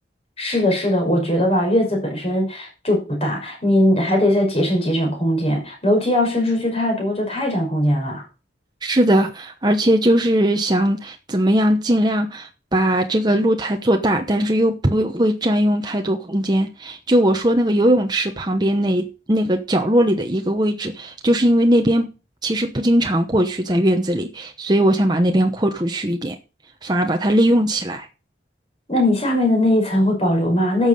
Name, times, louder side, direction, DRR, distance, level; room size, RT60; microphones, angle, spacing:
voice 1, 0.4-8.2 28.9-30.9, left 1 dB, 35° left, 5.8 m, -20 dB
voice 2, 8.8-22.1 22.4-26.4 26.8-28.1, right 1 dB, 25° right, 1.0 m, -19 dB
11.5 x 7.3 x 5.5 m
head